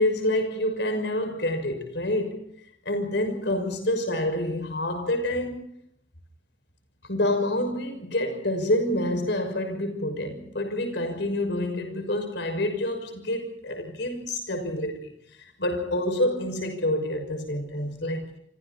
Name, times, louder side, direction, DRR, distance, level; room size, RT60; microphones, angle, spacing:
voice 1, 0.0-2.4 2.8-5.7 7.1-15.1 15.4-18.3, left 1 dB, 65° left, 6.0 m, -27 dB
29.5 x 26.5 x 4.3 m
head